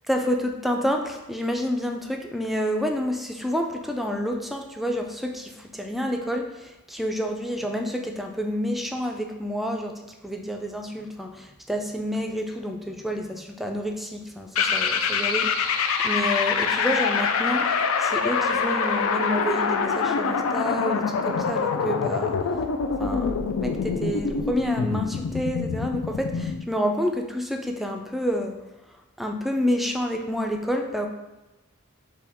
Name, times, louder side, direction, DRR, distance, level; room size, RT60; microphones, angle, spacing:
voice 1, 0.1-17.7 18.0-22.6 23.0-28.6 29.2-31.1, equal, ahead, 3 dB, 0.3 m, -29 dB
sound 1, 14.5-26.6, left 5 dB, 80° left, 0.4 m, -25 dB
5.6 x 2.3 x 3.4 m, 1.0 s
head